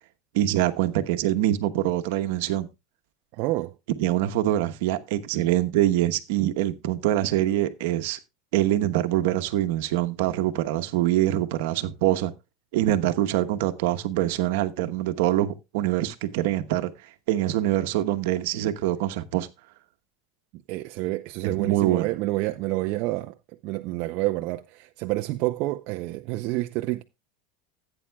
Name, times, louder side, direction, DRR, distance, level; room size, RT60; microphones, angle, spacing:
voice 1, 0.3-2.7 4.0-8.2 8.5-12.3 12.7-16.9 17.3-19.5 21.4-22.1, right 14 dB, 70° right, 1.0 m, -24 dB
voice 2, 3.3-3.7 20.7-23.3 23.6-27.0, right 19 dB, 50° right, 0.5 m, -28 dB
16.0 x 8.8 x 2.3 m
supercardioid pair, 150°, 0 cm